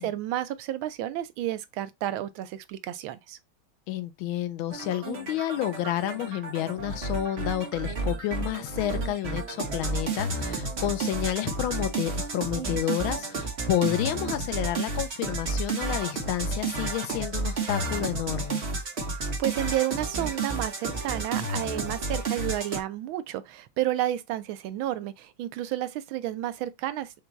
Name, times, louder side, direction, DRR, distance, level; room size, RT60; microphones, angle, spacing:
voice 1, 0.0-3.4 19.1-27.1, right 13 dB, 80° right, 1.4 m, -31 dB
voice 2, 3.9-18.6, left 12 dB, 80° left, 1.5 m, -30 dB
sound 1, 4.7-22.8, right 3 dB, 40° right, 1.1 m, -31 dB
5.8 x 2.3 x 3.8 m
omnidirectional pair, 2.2 m